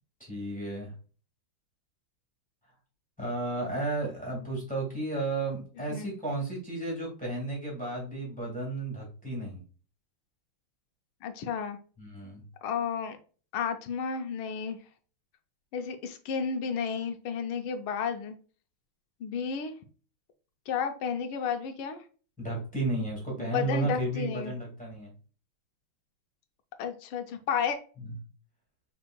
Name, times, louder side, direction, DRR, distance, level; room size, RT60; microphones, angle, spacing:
voice 1, 0.2-0.9 3.2-9.6 12.0-12.4 22.4-25.1 28.0-28.1, right 2 dB, 5° left, -2 dB, 1.8 m, -33 dB
voice 2, 5.8-6.1 11.2-11.8 12.6-13.2 13.5-14.8 15.7-18.3 19.2-19.7 20.7-22.0 23.4-24.5 26.8-27.8, left 6 dB, 85° left, 7 dB, 1.5 m, -32 dB
6.0 x 3.6 x 2.2 m, 0.38 s
omnidirectional pair, 2.3 m